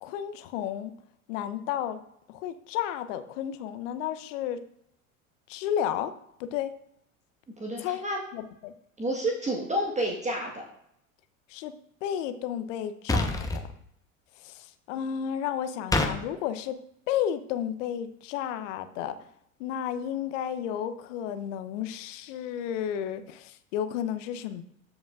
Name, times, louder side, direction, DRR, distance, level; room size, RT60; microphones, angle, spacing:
voice 1, 0.0-0.9 1.3-2.0 2.3-4.6 5.5-6.1 6.4-6.7 7.8-8.1 8.3-8.7 11.5-11.7 12.0-13.6 14.4-16.8 17.1-19.1 19.6-24.6, left 10 dB, 60° left, 11 dB, 0.8 m, -32 dB
voice 2, 7.6-8.2 9.0-10.6, right 1 dB, 15° right, -1 dB, 1.4 m, -29 dB
sound 1, 13.1-13.6 15.9-16.1, left 2 dB, 10° left, 0.9 m, -25 dB
13.5 x 5.2 x 2.4 m, 0.73 s
hypercardioid pair, 80°, 42 cm